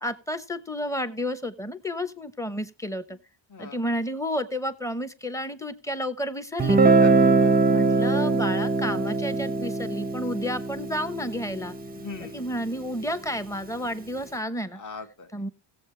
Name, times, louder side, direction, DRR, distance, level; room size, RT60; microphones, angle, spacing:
voice 1, 0.0-3.2 3.6-7.0 7.6-11.8 12.2-14.8 15.3-15.5, equal, 5° left, 12 dB, 0.9 m, -31 dB
Guitar, 6.6-12.4, right 3 dB, 20° right, 0.6 m, -22 dB
voice 2, 6.8-7.6 12.0-12.4 14.7-15.3, left 5 dB, 35° left, 7 dB, 1.6 m, -40 dB
16.5 x 7.5 x 3.2 m, 0.34 s
cardioid pair, 105°, 50 cm